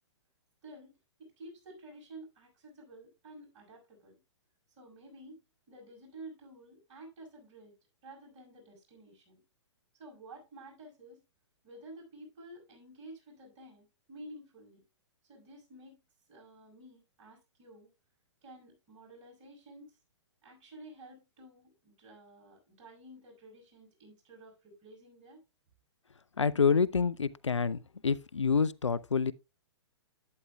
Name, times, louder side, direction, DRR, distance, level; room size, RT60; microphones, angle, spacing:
voice 1, 0.6-4.2 4.8-5.4 5.7-7.7 8.0-9.4 10.0-11.2 11.6-14.8 15.2-16.0 16.3-17.9 18.4-20.0 20.4-25.4, right 1 dB, 35° right, 5.8 m, -52 dB
voice 2, 26.4-29.3, left 5 dB, 90° left, 0.4 m, -27 dB
11.5 x 9.1 x 2.3 m
figure-of-eight pair, 120°, 15 cm